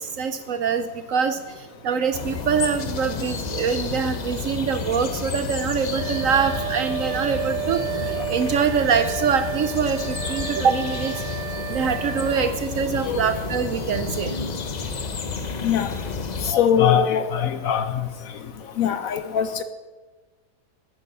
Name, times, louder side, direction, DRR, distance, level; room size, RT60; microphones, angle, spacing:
voice 1, 0.0-11.1 11.7-14.4, right 6 dB, 65° right, 10 dB, 0.9 m, -24 dB
sound 1, 2.1-16.5, left 5 dB, 50° left, 0.5 m, -31 dB
Wind instrument woodwind instrument, 5.9-12.5, right 11 dB, 90° right, 1.3 m, -32 dB
voice 2, 16.5-17.9 18.8-19.6, left 8 dB, 65° left, 11 dB, 0.9 m, -21 dB
10.0 x 9.4 x 6.8 m, 1.3 s
omnidirectional pair, 1.8 m